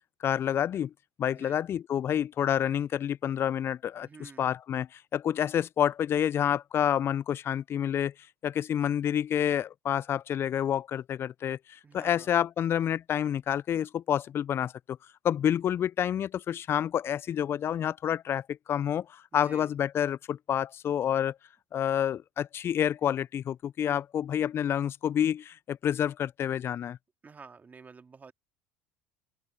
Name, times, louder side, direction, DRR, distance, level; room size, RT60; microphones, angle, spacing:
voice 1, 0.2-0.9 1.2-8.1 8.4-15.0 15.2-21.4 21.7-27.0, left 9 dB, 40° left, 0.3 m, -28 dB
voice 2, 4.0-4.5 11.8-12.4 19.3-19.7 27.2-28.3, right 5 dB, 25° right, 2.2 m, -50 dB
open air
hypercardioid pair, 80°, 7 cm